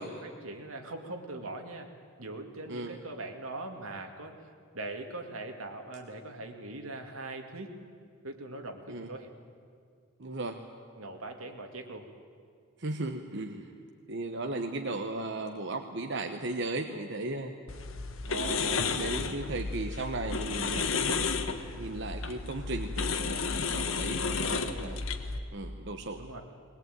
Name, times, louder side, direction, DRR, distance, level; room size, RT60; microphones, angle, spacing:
voice 1, 0.0-1.9 2.2-4.4 4.7-7.7 8.2-9.3 11.0-12.1 24.2-24.9 26.2-26.4, right 2 dB, 85° right, 4 dB, 2.4 m, -41 dB
voice 2, 10.2-10.6 12.8-13.7 14.1-17.5 18.3-21.2 21.8-25.0 25.5-26.2, right 2 dB, 55° right, 5 dB, 1.1 m, -36 dB
sound 1, 17.7-25.4, left 4 dB, 70° left, 1.4 m, -32 dB
20.5 x 20.5 x 9.3 m, 2.1 s
head